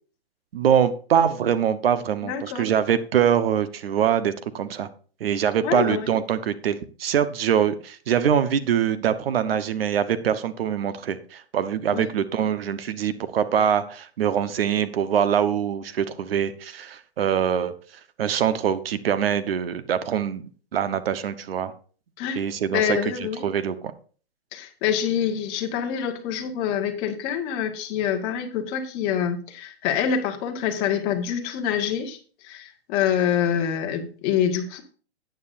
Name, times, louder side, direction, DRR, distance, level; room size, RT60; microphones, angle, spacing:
voice 1, 0.5-4.9 5.2-17.7 18.2-20.4 20.7-21.7 22.3-23.7, right 8 dB, 60° right, 12 dB, 1.1 m, -23 dB
voice 2, 2.2-2.7 5.6-6.1 11.9-12.1 22.2-22.4 22.7-23.5 24.5-34.8, left 8 dB, 30° left, 5 dB, 1.6 m, -26 dB
13.0 x 9.4 x 2.6 m, 0.40 s
hypercardioid pair, 145°, 33 cm